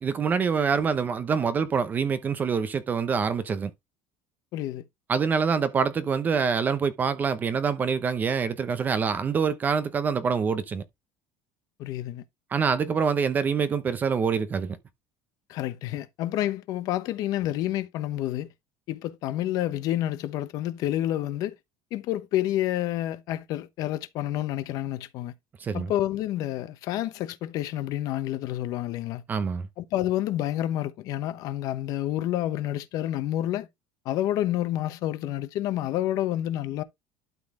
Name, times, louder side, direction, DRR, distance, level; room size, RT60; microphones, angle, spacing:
voice 1, 0.0-3.7 5.1-10.8 12.5-14.8 25.6-25.9 29.3-29.7, right 6 dB, 20° right, 0.7 m, -25 dB
voice 2, 4.5-4.8 11.8-12.2 15.5-18.5 18.9-21.5 21.9-25.3 25.7-29.2 29.8-33.7 34.0-36.8, left 13 dB, 50° left, 0.9 m, -29 dB
12.0 x 4.0 x 3.7 m
cardioid pair, 160°, 8 cm